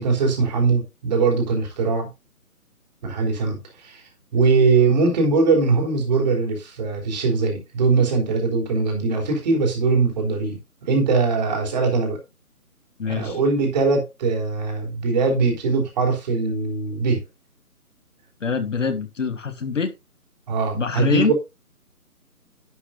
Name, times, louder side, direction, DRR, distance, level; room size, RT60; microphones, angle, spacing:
voice 1, 0.0-2.1 3.0-4.0 4.3-10.6 10.9-12.2 13.1-17.2 20.5-21.3, right 4 dB, 30° right, 3.6 m, -21 dB
voice 2, 13.0-13.4 18.4-19.9 20.7-21.3, left 5 dB, 55° left, 1.6 m, -24 dB
11.0 x 10.0 x 2.4 m
figure-of-eight pair, 150°, 45 cm